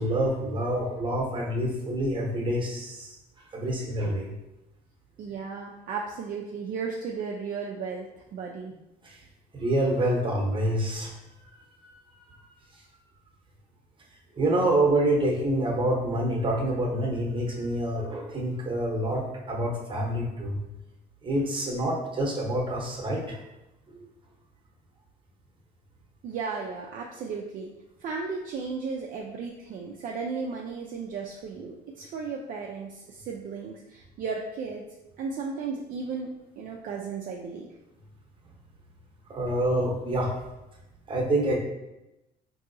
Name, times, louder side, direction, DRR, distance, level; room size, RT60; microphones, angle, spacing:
voice 1, 0.0-3.1 3.5-4.3 9.0-9.2 9.5-11.1 11.9-12.0 14.4-20.6 21.2-23.4 39.3-40.3 41.1-41.6, right 1 dB, 30° right, -1 dB, 0.9 m, -27 dB
voice 2, 5.2-8.7 26.2-27.7 28.0-34.9 35.2-36.3 36.6-37.7, right 5 dB, 55° right, -1 dB, 0.4 m, -35 dB
3.7 x 2.7 x 2.6 m, 0.96 s
cardioid pair, 110°, 17 cm